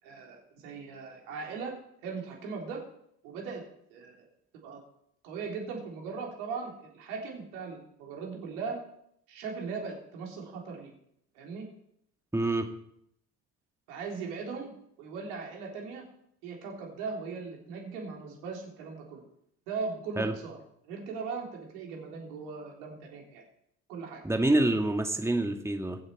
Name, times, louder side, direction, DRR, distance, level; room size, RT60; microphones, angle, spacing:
voice 1, 0.0-1.8 2.0-2.8 3.2-3.6 3.9-4.3 4.5-4.8 5.2-8.8 9.3-10.9 11.4-11.7 13.9-16.1 16.4-19.2 19.7-20.6 20.8-23.4 23.9-24.2, right 5 dB, 75° right, 0 dB, 3.7 m, -39 dB
voice 2, 12.3-12.7 20.2-20.3 24.2-26.0, right 1 dB, 5° right, 4 dB, 2.0 m, -26 dB
22.5 x 7.9 x 4.8 m, 0.72 s
hypercardioid pair, 55°, 46 cm